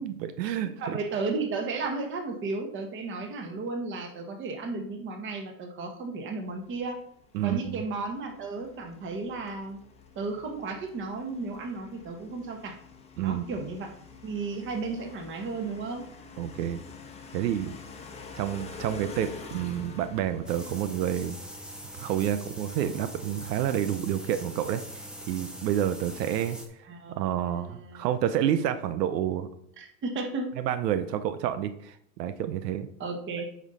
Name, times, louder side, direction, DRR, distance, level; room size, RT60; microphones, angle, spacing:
voice 1, 0.0-1.0 7.3-7.8 13.2-13.5 16.4-16.8 17.3-17.7 18.4-21.4 22.0-26.6 27.1-29.5 30.6-32.9, right 10 dB, 80° right, 11 dB, 0.8 m, -29 dB
voice 2, 0.8-7.0 7.4-9.8 10.1-12.8 13.2-13.9 14.2-16.0 26.9-27.2 27.5-28.1 29.8-30.5 33.0-33.5, right 3 dB, 25° right, 4 dB, 1.3 m, -34 dB
sound 1, 6.6-22.8, left 5 dB, 15° left, 1.0 m, -47 dB
sound 2, 20.5-26.7, right 1 dB, ahead, 0.7 m, -42 dB
9.2 x 5.3 x 4.1 m, 0.70 s
supercardioid pair, 140°, 48 cm